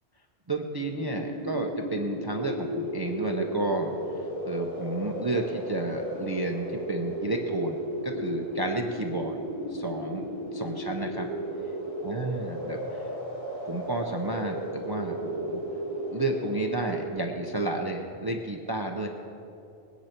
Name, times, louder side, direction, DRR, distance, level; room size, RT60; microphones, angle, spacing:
voice 1, 0.5-4.0 4.5-9.4 9.7-11.3 12.0-13.1 13.6-15.6 16.1-19.1, right 2 dB, 25° right, 2 dB, 0.6 m, -31 dB
sound 1, 0.9-17.1, right 1 dB, 40° left, 3.7 m, -34 dB
19.5 x 9.6 x 4.4 m, 2.8 s
omnidirectional pair, 1.1 m